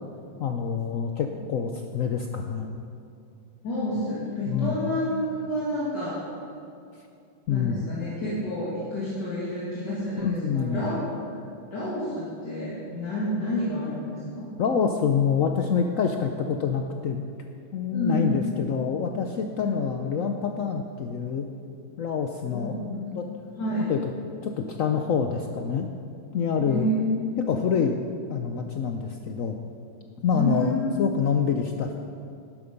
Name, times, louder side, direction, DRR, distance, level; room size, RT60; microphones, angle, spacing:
voice 1, 0.4-2.8 4.5-4.8 7.5-7.8 10.2-10.8 14.6-17.2 17.7-21.5 22.0-23.2 23.9-24.0 24.4-25.9 26.3-26.9 27.4-28.0 28.3-29.6 30.2-32.0, left 6 dB, 80° left, 4 dB, 0.7 m, -26 dB
voice 2, 3.6-6.2 7.5-11.0 11.3-11.4 11.7-14.5 17.9-18.3 19.6-19.7 22.4-22.8 23.6-23.9 26.6-27.6 30.3-31.1, left 1 dB, 60° left, -9 dB, 2.9 m, -29 dB
12.0 x 11.0 x 5.2 m, 2.5 s
omnidirectional pair, 2.2 m